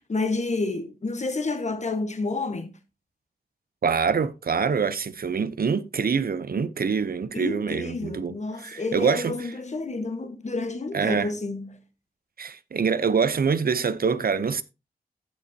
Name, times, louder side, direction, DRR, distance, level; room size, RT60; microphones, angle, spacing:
voice 1, 0.1-2.8 7.3-11.8, left 3 dB, 45° left, 1.3 m, -29 dB
voice 2, 3.8-9.5 10.9-11.3 12.4-14.6, right 5 dB, 70° right, 0.7 m, -25 dB
14.5 x 5.2 x 2.7 m
wide cardioid pair, 110°, 16 cm